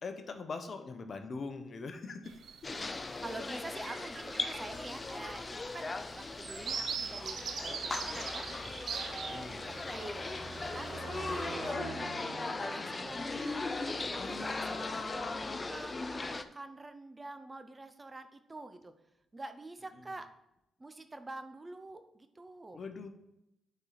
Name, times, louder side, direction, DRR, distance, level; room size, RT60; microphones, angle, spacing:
voice 1, 0.0-3.1 9.1-9.6 14.2-15.6 20.0-20.1 22.7-23.1, left 4 dB, 55° left, 7 dB, 0.8 m, -42 dB
sound 1, 2.3-2.9 3.3-3.5 3.8-9.8 10.3-10.9, right 6 dB, 65° right, 0.6 m, -41 dB
sound 2, 2.6-16.4, left 3 dB, 35° left, 0.5 m, -38 dB
voice 2, 3.2-8.5 8.9-10.3 10.7-13.6 13.9-15.2 15.7-18.9 19.3-20.3 20.8-22.8, right 2 dB, 25° right, 9 dB, 0.7 m, -47 dB
Car passing by, 4.6-15.4, right 3 dB, 80° right, 1.2 m, -49 dB
8.0 x 4.4 x 4.0 m, 0.85 s
supercardioid pair, 50°, 0 cm